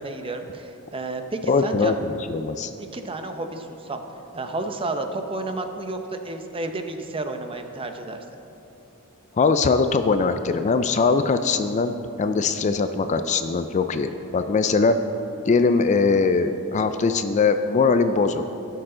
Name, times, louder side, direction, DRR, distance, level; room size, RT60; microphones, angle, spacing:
voice 1, 0.0-2.0 2.8-4.0 4.3-8.2, right 2 dB, 25° right, 6 dB, 0.6 m, -31 dB
voice 2, 1.5-2.7 9.4-15.0 15.5-18.4, left 4 dB, 35° left, 9 dB, 0.3 m, -21 dB
16.0 x 6.8 x 3.8 m, 2.9 s
head